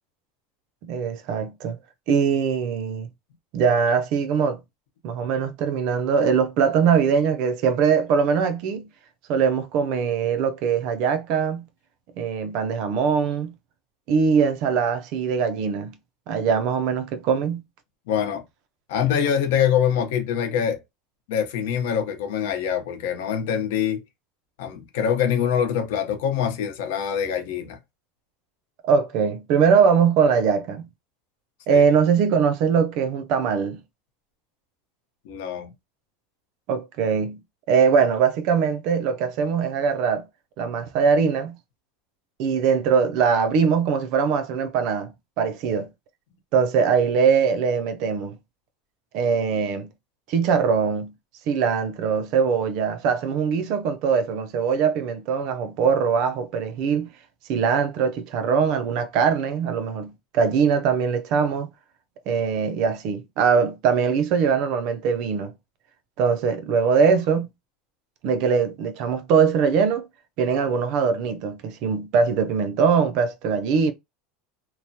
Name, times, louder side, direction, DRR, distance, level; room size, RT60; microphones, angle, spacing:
voice 1, 0.8-1.8 2.1-3.1 3.5-4.6 5.0-8.9 9.3-11.6 12.2-13.5 14.1-15.9 16.3-17.6 28.8-30.9 31.7-33.8 36.7-37.4 37.7-40.2 40.6-41.6 42.4-45.9 46.5-48.4 49.1-49.9 50.3-51.1 51.5-57.1 57.5-61.7 62.3-65.5 66.2-67.5 68.2-70.1 70.4-73.9, right 6 dB, 55° right, 0.5 m, -22 dB
voice 2, 18.1-18.4 18.9-20.8 21.3-24.0 24.6-27.8 31.7-31.8 35.3-35.7, left 8 dB, 80° left, 0.8 m, -24 dB
3.0 x 2.1 x 2.7 m
supercardioid pair, 150°, 0 cm